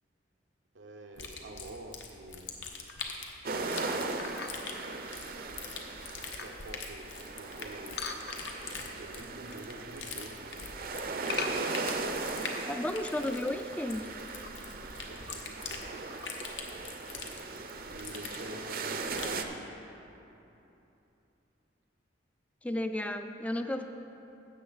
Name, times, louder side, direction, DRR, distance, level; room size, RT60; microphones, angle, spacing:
voice 1, 0.7-2.6 3.5-4.2 6.2-8.1 8.9-11.4 13.1-13.4 15.0-16.0 17.3-19.7, right 1 dB, 85° right, 3 dB, 0.8 m, -48 dB
sound 1, 1.2-19.4, left 5 dB, 80° left, 1.0 m, -44 dB
sound 2, 2.9-3.2 4.2-4.8 5.4-5.5 5.9-6.6 8.0-8.8 9.2-9.7 10.0-10.4 11.3-12.8 13.2-13.3 13.5-13.6 14.2-14.5 15.1-15.7 16.1-16.3, left 5 dB, 55° left, 0.6 m, -41 dB
sound 3, 3.4-19.4, right 3 dB, 50° right, 0.6 m, -38 dB
voice 2, 12.7-14.1 22.6-23.8, left 1 dB, 5° left, 7 dB, 0.3 m, -33 dB
16.0 x 6.7 x 4.0 m, 3.0 s
head